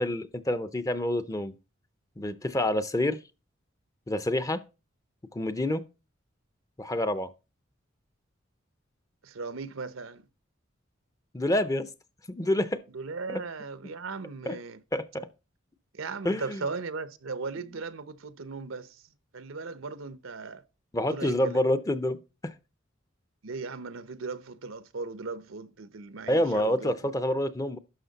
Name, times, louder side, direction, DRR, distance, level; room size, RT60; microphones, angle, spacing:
voice 1, 0.0-1.6 2.2-3.2 4.1-4.6 5.3-5.8 6.8-7.3 11.3-11.9 12.3-12.8 13.3-13.4 14.5-14.6 14.9-15.3 16.2-16.6 20.9-22.5 26.3-27.8, left 1 dB, 15° left, 0.5 m, -27 dB
voice 2, 9.2-10.3 12.9-14.8 15.9-19.0 19.3-20.6 21.1-21.6 23.4-26.9, right 4 dB, 85° right, 0.8 m, -37 dB
11.5 x 6.2 x 4.0 m
head